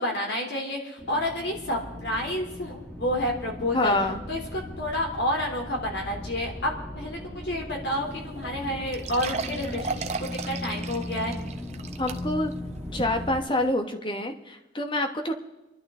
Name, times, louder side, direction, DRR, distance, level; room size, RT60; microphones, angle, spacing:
voice 1, 0.0-4.0 4.3-11.4, left 1 dB, 65° left, 1 dB, 3.3 m, -30 dB
sound 1, 1.0-13.4, left 1 dB, 10° left, 1.7 m, -38 dB
voice 2, 3.7-4.2 12.0-12.5 12.9-15.3, left 1 dB, 25° left, 5 dB, 1.2 m, -26 dB
sound 2, 8.1-8.2 8.4-8.5 8.9-12.5 13.0-13.1 13.7-13.8, right 4 dB, 35° right, 0.7 m, -35 dB
27.0 x 11.5 x 3.8 m, 1.0 s
head